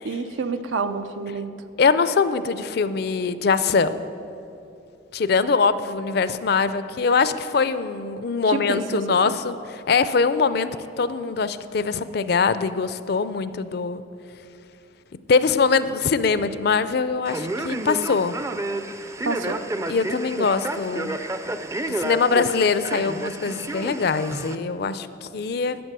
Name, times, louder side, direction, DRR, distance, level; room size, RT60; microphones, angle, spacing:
voice 1, 0.0-1.5 8.5-9.4 19.3-19.6, right 4 dB, 90° right, 9 dB, 0.6 m, -28 dB
voice 2, 1.8-4.0 5.1-10.7 11.0-14.0 15.3-18.4 19.9-21.2 21.9-25.8, left 5 dB, 55° left, 14 dB, 0.4 m, -22 dB
Male speech man speaking, 17.2-24.6, right 1 dB, 15° right, 0.4 m, -30 dB
12.0 x 8.1 x 6.7 m, 2.7 s
head